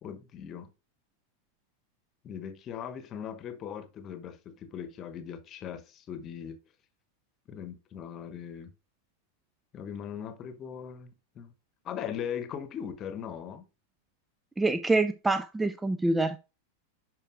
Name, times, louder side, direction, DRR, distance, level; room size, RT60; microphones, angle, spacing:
voice 1, 0.0-0.7 2.2-6.6 7.5-8.7 9.7-11.5 11.8-13.7, left 8 dB, 30° left, 1.0 m, -39 dB
voice 2, 14.6-16.4, right 2 dB, 10° right, 0.4 m, -26 dB
10.5 x 4.6 x 2.5 m
figure-of-eight pair, 90°, 0 cm